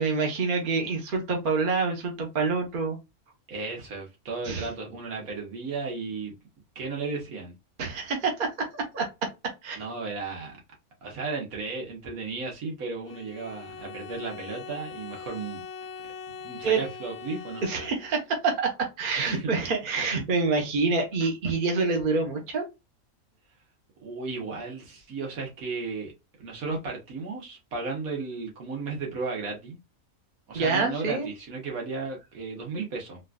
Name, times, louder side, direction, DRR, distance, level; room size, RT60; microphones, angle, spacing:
voice 1, 0.0-3.0 4.4-4.7 7.8-9.1 9.6-9.8 16.6-16.8 17.6-22.7 30.5-31.3, right 4 dB, 40° right, 1.0 m, -27 dB
voice 2, 3.5-6.4 6.8-7.5 9.8-10.5 11.0-15.6 16.4-17.6 19.2-19.5 19.9-20.0 24.0-26.1 26.4-29.8 30.5-33.2, right 4 dB, 75° right, 1.7 m, -34 dB
Bowed string instrument, 13.0-18.3, left 5 dB, 70° left, 0.9 m, -42 dB
4.0 x 2.5 x 2.3 m
omnidirectional pair, 1.5 m